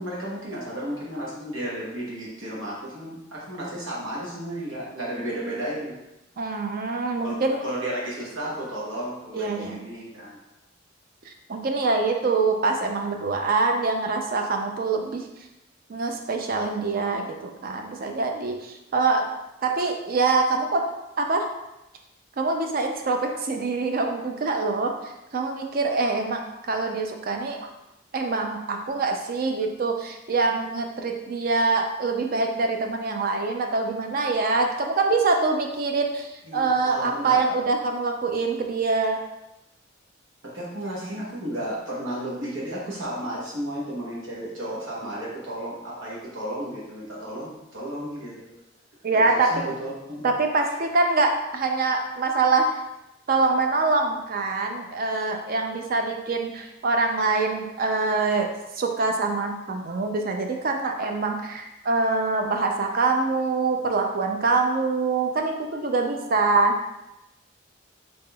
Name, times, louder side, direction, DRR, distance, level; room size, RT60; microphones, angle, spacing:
voice 1, 0.0-5.9 7.2-10.4 36.5-37.4 40.4-48.5 49.1-50.3, right 1 dB, 90° right, -5 dB, 1.0 m, -33 dB
voice 2, 6.4-7.6 9.3-9.8 11.3-15.3 15.9-19.3 19.6-21.5 22.4-24.9 25.3-26.4 26.7-27.7 28.1-39.2 49.0-49.7 50.2-52.7 53.3-58.5 58.8-66.8, right 3 dB, 50° right, 3 dB, 0.4 m, -24 dB
3.9 x 3.5 x 2.2 m, 0.92 s
head